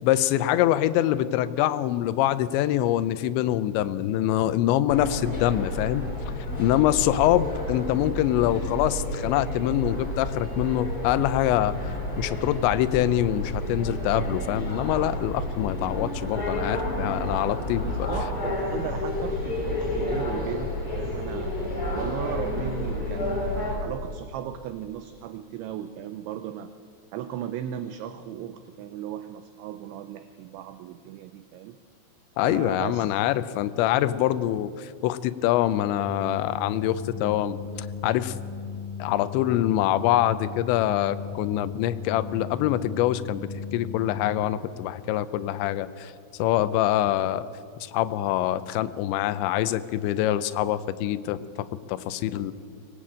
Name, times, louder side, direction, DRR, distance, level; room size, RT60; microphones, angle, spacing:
voice 1, 0.0-6.1 6.6-11.8 12.2-17.9 32.4-37.6 38.0-38.4 39.0-46.1 46.4-47.5 47.8-52.5, left 13 dB, 80° left, 12 dB, 2.7 m, -25 dB
sound 1, 4.9-23.7, left 1 dB, 30° left, 4.3 m, -30 dB
voice 2, 17.8-26.7 27.1-31.8 32.4-33.1, right 10 dB, 80° right, 10 dB, 2.8 m, -36 dB
sound 2, 36.0-44.4, left 6 dB, 50° right, 3.4 m, -36 dB
24.0 x 20.0 x 8.7 m, 2.3 s
omnidirectional pair, 5.9 m